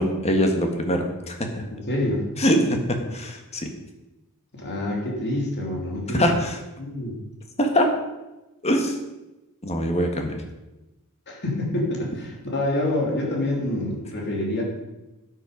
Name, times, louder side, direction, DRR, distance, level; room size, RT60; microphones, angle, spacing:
voice 1, 0.0-1.6 2.4-3.7 6.1-6.6 7.6-7.9 8.6-9.0 9.6-10.4, equal, 30° left, 4 dB, 1.7 m, -23 dB
voice 2, 1.7-2.2 4.5-6.2 6.8-7.2 11.3-14.6, left 1 dB, 50° left, -1 dB, 3.2 m, -27 dB
12.5 x 9.4 x 5.2 m, 1.0 s
head